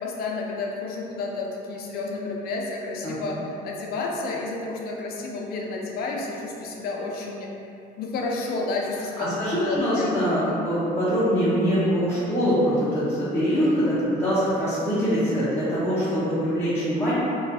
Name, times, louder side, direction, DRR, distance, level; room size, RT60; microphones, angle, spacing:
voice 1, 0.0-7.5 8.0-10.1 10.4-10.6, left 3 dB, 65° left, -1 dB, 0.4 m, -30 dB
voice 2, 9.2-17.1, equal, 15° left, -12 dB, 0.6 m, -23 dB
2.3 x 2.2 x 2.6 m, 2.7 s
cardioid pair, 110°, 17 cm